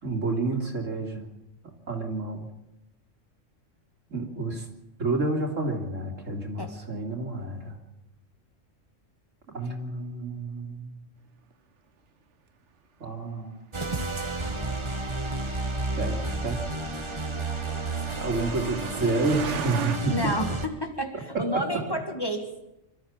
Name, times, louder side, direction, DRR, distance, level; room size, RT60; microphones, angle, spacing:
voice 1, 0.0-1.3 1.9-2.5 4.1-4.7 5.0-7.8 9.5-11.0 13.0-13.5 16.0-16.2 16.4-16.6 18.2-20.3 21.3-21.6, right 3 dB, 85° right, 2 dB, 3.3 m, -29 dB
sound 1, 13.7-20.7, right 2 dB, 25° right, 1.6 m, -31 dB
Truck, 16.2-20.0, right 7 dB, 70° right, 1.4 m, -37 dB
voice 2, 20.1-22.5, equal, 20° left, 4 dB, 2.0 m, -30 dB
26.0 x 13.5 x 7.3 m, 0.92 s
omnidirectional pair, 1.3 m